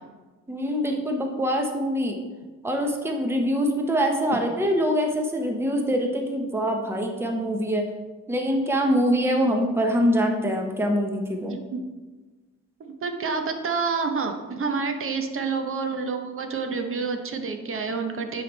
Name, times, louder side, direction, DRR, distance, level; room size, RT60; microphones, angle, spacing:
voice 1, 0.5-2.2 2.6-7.9 8.3-11.6, equal, 10° right, 2 dB, 0.9 m, -24 dB
voice 2, 11.4-11.8 12.8-18.4, right 4 dB, 45° right, 5 dB, 0.9 m, -28 dB
9.4 x 3.4 x 4.0 m, 1.3 s
cardioid pair, 90°, 30 cm